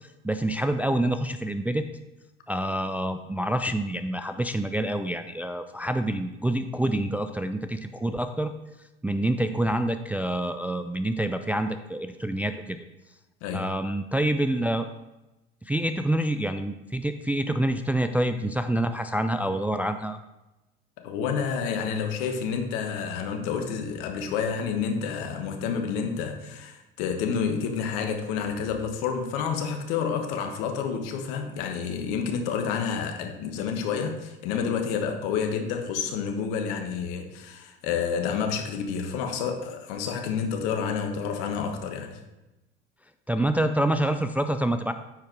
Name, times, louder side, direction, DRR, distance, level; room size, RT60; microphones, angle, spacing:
voice 1, 0.0-1.9 2.5-8.5 9.0-12.8 13.5-14.9 15.7-20.2 43.3-44.9, right 1 dB, 5° right, 8 dB, 0.3 m, -27 dB
voice 2, 13.4-13.7 21.0-42.2, left 6 dB, 65° left, 5 dB, 1.3 m, -29 dB
9.5 x 4.6 x 4.6 m, 1.0 s
hypercardioid pair, 75°, 30 cm